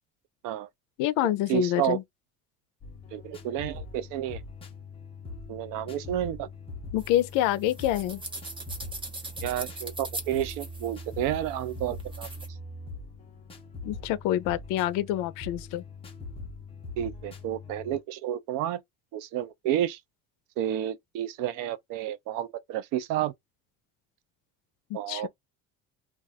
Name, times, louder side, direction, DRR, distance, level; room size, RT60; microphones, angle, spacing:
voice 1, 1.0-2.0 6.9-8.2 13.8-15.8 25.1-25.3, left 13 dB, 80° left, 0.5 m, -27 dB
voice 2, 1.5-2.0 3.1-4.4 5.5-6.5 9.4-12.3 17.0-18.8 19.1-20.0 20.6-23.3 24.9-25.3, right 12 dB, 75° right, 0.6 m, -30 dB
sound 1, 2.8-18.0, left 2 dB, 15° left, 0.7 m, -42 dB
sound 2, 7.0-12.5, right 2 dB, 15° right, 0.8 m, -41 dB
2.4 x 2.3 x 4.0 m
cardioid pair, 155°, 32 cm